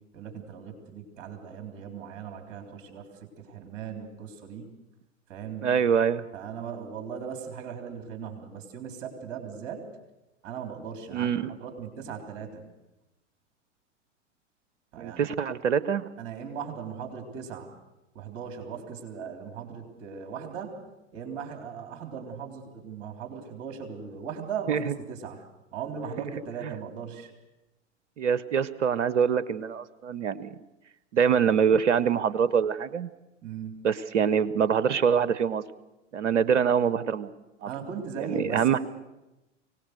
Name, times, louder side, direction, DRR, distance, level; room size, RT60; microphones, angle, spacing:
voice 1, 0.1-3.1 3.4-4.7 5.3-5.7 6.3-9.8 10.4-11.3 11.6-12.6 14.9-15.3 16.2-17.7 18.1-20.7 21.1-24.8 25.1-25.4 25.7-27.3 33.4-33.8 37.7-38.8, right 6 dB, 50° right, 4 dB, 3.7 m, -38 dB
voice 2, 5.6-6.2 11.1-11.5 15.0-16.1 24.7-24.9 26.6-26.7 28.2-30.6 31.1-33.1 33.8-35.6 36.1-37.3 37.6-37.7 38.3-38.8, right 7 dB, 70° right, 16 dB, 0.9 m, -24 dB
24.0 x 18.0 x 6.7 m, 0.99 s
figure-of-eight pair, 95°, 37 cm